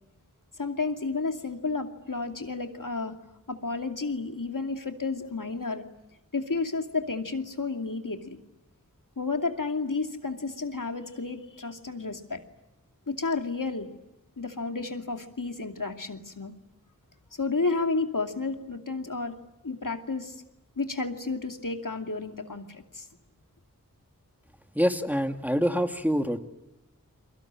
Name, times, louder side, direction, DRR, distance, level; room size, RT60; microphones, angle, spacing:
voice 1, 0.6-3.1 3.5-5.9 6.3-8.4 9.2-12.4 13.1-13.9 14.4-16.5 17.3-19.3 19.6-20.4 20.8-23.1, left 3 dB, 75° left, 5 dB, 2.6 m, -31 dB
voice 2, 24.7-26.4, equal, 5° right, 6 dB, 2.3 m, -25 dB
30.0 x 23.5 x 7.6 m, 0.99 s
wide cardioid pair, 45°, 32 cm